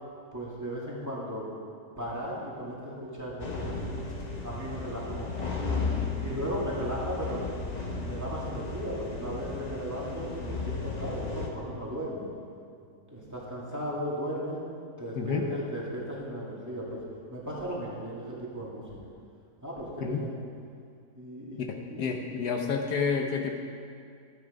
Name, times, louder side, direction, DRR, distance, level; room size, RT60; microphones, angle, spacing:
voice 1, 0.3-1.5 2.0-4.1 4.4-5.9 6.2-7.5 7.9-12.3 13.1-14.6 15.0-17.0 17.3-19.0 19.6-20.3 21.1-22.1, equal, 10° right, -6 dB, 2.3 m, -36 dB
sound 1, 3.4-11.5, left 4 dB, 30° left, 1.0 m, -34 dB
voice 2, 21.7-23.6, left 5 dB, 70° left, 2 dB, 1.4 m, -30 dB
12.5 x 9.1 x 5.2 m, 2.3 s
omnidirectional pair, 1.8 m